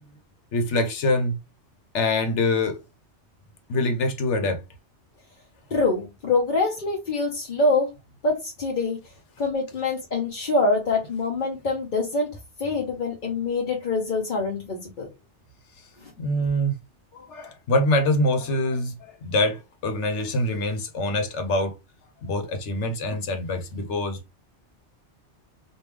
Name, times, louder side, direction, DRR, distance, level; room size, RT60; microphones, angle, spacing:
voice 1, 0.5-1.4 1.9-2.8 3.7-4.6 16.2-16.7 17.1-21.8 22.2-24.3, left 1 dB, 85° left, 1.2 m, -24 dB
voice 2, 5.7-7.9 8.2-9.0 9.4-15.1 16.0-16.1, left 3 dB, 50° left, 0.8 m, -25 dB
3.2 x 2.6 x 3.3 m
omnidirectional pair, 1.2 m